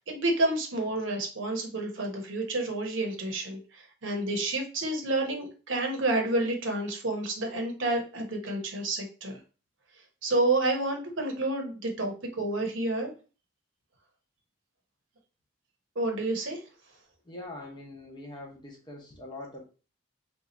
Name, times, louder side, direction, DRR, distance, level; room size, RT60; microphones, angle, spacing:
voice 1, 0.0-9.4 10.2-13.1 16.0-16.6, right 2 dB, 65° right, 2 dB, 0.9 m, -29 dB
voice 2, 17.2-19.6, left 2 dB, 20° left, 0 dB, 0.7 m, -43 dB
2.7 x 2.4 x 4.1 m, 0.35 s
head